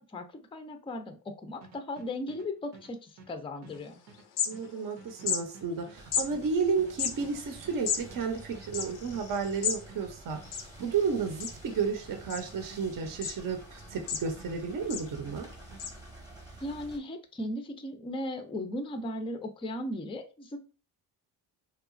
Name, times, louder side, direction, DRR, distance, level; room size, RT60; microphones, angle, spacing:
voice 1, 0.0-4.0 16.6-20.6, left 1 dB, 15° left, 7 dB, 0.4 m, -37 dB
sound 1, 1.6-14.6 14.8-15.9, right 4 dB, 85° right, 0.8 m, -53 dB
sound 2, 3.8-3.9 4.1-4.9 5.2-5.4 6.1-6.3 6.9-9.8 10.1-10.2 10.4-11.1 11.4-11.8 12.3-12.8 13.2-13.4 13.8-14.5 14.9-15.1 15.8-15.9, left 7 dB, 90° left, 0.6 m, -33 dB
voice 2, 4.5-15.5, right 5 dB, 50° right, 5 dB, 0.7 m, -32 dB
sound 3, 5.9-17.0, right 2 dB, 10° right, 0.9 m, -50 dB
2.8 x 2.3 x 2.5 m, 0.34 s
supercardioid pair, 65°, 44 cm